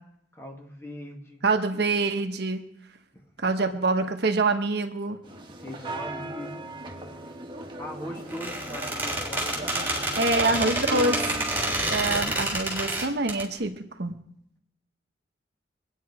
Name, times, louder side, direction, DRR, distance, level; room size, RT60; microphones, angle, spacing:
voice 1, 0.3-1.4 3.1-3.3 5.6-6.9 7.8-11.1, left 1 dB, 15° left, 1 dB, 2.0 m, -41 dB
voice 2, 1.4-2.7 3.4-5.2 10.2-11.2 11.9-14.2, right 3 dB, 65° right, 6 dB, 1.2 m, -25 dB
sound 1, 5.2-12.4, right 1 dB, 25° right, 1.7 m, -37 dB
Squeak, 8.3-13.4, right 1 dB, 10° right, 3.2 m, -28 dB
24.0 x 9.3 x 4.8 m, 0.74 s
head